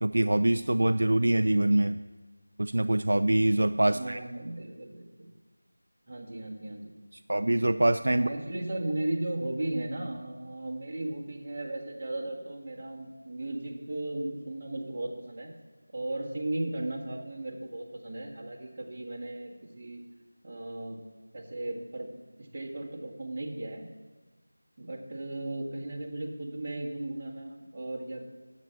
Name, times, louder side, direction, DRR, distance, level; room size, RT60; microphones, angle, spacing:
voice 1, 0.0-2.0 2.6-4.2 7.3-8.3, right 1 dB, 65° right, 10 dB, 0.4 m, -24 dB
voice 2, 3.9-5.3 6.1-6.9 8.1-15.5 15.9-20.0 20.4-21.0 21.3-22.1 22.4-23.9 24.8-28.2, right 1 dB, 30° right, -3 dB, 1.9 m, -36 dB
9.4 x 7.9 x 6.8 m, 1.3 s
figure-of-eight pair, 175°, 0 cm